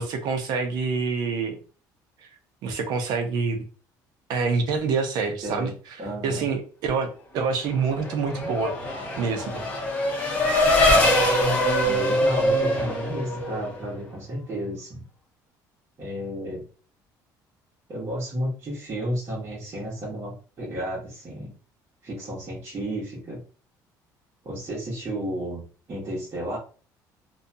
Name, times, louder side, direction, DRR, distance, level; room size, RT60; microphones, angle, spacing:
voice 1, 0.0-1.6 2.6-3.7 4.3-5.7 6.2-8.8 9.2-9.6, right 4 dB, 65° right, 6 dB, 0.6 m, -26 dB
voice 2, 5.4-6.5 11.8-15.0 16.0-16.6 17.9-21.5 22.0-23.4 24.4-25.6 25.9-26.6, equal, 35° right, -9 dB, 1.1 m, -32 dB
Race car auto racing / Accelerating revving vroom, 7.8-13.9, left 1 dB, 20° left, 0.7 m, -23 dB
2.5 x 2.2 x 2.6 m, 0.38 s
cardioid pair, 150°, 8 cm